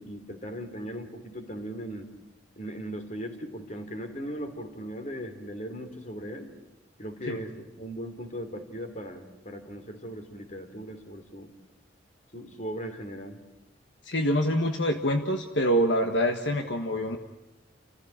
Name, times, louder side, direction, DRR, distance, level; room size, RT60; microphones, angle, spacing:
voice 1, 0.0-2.1 2.5-6.5 7.0-11.5 12.3-13.4, equal, 40° left, 7 dB, 3.2 m, -38 dB
voice 2, 14.0-17.2, equal, 65° left, 5 dB, 1.6 m, -25 dB
29.5 x 15.5 x 9.0 m, 1.0 s
head